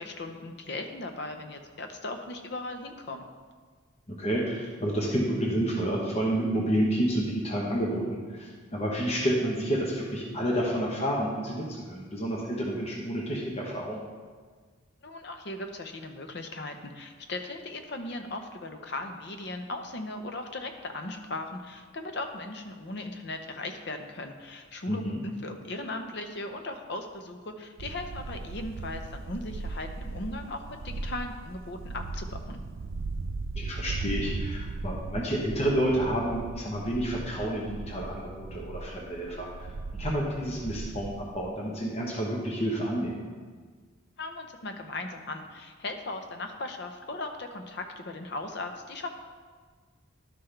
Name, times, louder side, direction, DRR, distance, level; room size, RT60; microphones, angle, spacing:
voice 1, 0.0-3.2 15.0-32.6 44.2-49.1, left 2 dB, 55° left, 6 dB, 0.7 m, -38 dB
voice 2, 4.1-8.0 8.3-14.0 24.9-25.2 33.6-39.7 40.0-43.2, right 1 dB, 30° left, -3 dB, 1.1 m, -29 dB
sound 1, 27.8-41.5, right 3 dB, 80° right, 0.4 m, -38 dB
11.5 x 5.7 x 3.4 m, 1.5 s
head